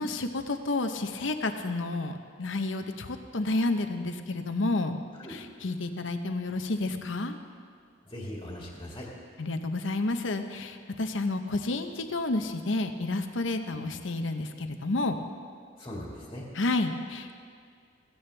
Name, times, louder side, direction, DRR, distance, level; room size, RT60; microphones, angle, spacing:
voice 1, 0.0-5.0 5.3-7.4 9.4-15.2 16.6-17.5, left 2 dB, 75° left, 7 dB, 0.8 m, -30 dB
voice 2, 8.0-9.1 15.8-16.5, left 1 dB, 20° left, -3 dB, 1.9 m, -40 dB
16.5 x 16.0 x 3.4 m, 2.2 s
head